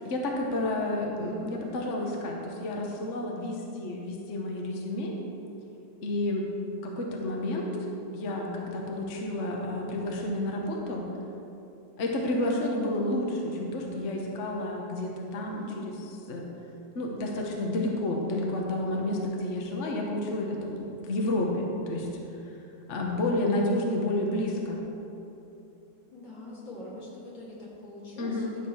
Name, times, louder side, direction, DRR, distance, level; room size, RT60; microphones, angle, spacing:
voice 1, 0.0-5.1 6.0-6.5 6.8-7.7 8.1-11.0 12.0-15.9 16.3-16.5 16.9-22.1 22.4-22.5 22.9-24.8 28.2-28.6, left 1 dB, 45° left, 0 dB, 1.3 m, -30 dB
voice 2, 15.4-16.0 26.1-28.5, left 1 dB, 80° left, -6 dB, 3.1 m, -43 dB
12.0 x 5.0 x 7.1 m, 2.8 s
omnidirectional pair, 2.1 m